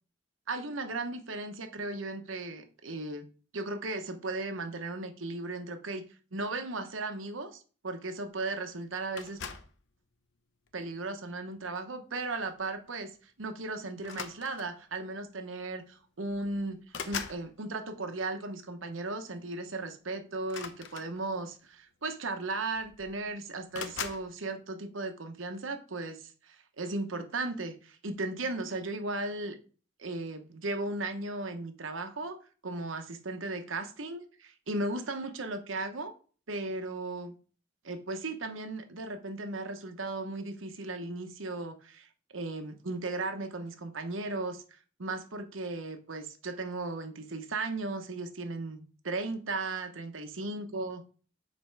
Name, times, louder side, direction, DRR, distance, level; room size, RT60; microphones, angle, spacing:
voice 1, 0.5-3.3 3.5-6.0 6.3-9.4 10.7-13.1 13.4-29.6 30.0-32.4 32.6-36.1 36.5-37.3 37.8-42.1 42.3-44.6 45.0-51.0, right 2 dB, 80° right, 1.0 m, -36 dB
sound 1, 9.2-9.8 10.7-11.0 12.5-12.6 12.9-13.1 14.0-14.9 15.9-16.0 16.3-17.5 20.4-21.5 22.4-22.5 22.7-23.3 23.7-24.3, left 6 dB, 70° left, 0.7 m, -41 dB
6.6 x 4.5 x 4.6 m
head